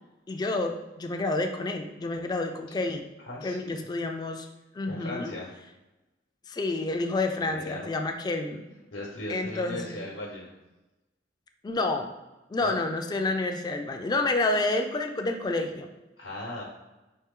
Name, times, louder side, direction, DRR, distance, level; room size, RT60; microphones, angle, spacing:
voice 1, 0.3-3.1 3.4-4.5 4.7-5.3 6.5-8.6 9.3-10.0 11.6-12.1 12.5-15.9, left 2 dB, 20° left, 4 dB, 0.3 m, -29 dB
voice 2, 3.2-3.9 4.9-5.5 7.4-7.9 8.9-10.6 12.6-12.8 16.2-16.6, left 1 dB, 90° left, -3 dB, 0.9 m, -38 dB
4.4 x 3.1 x 3.6 m, 1.0 s
head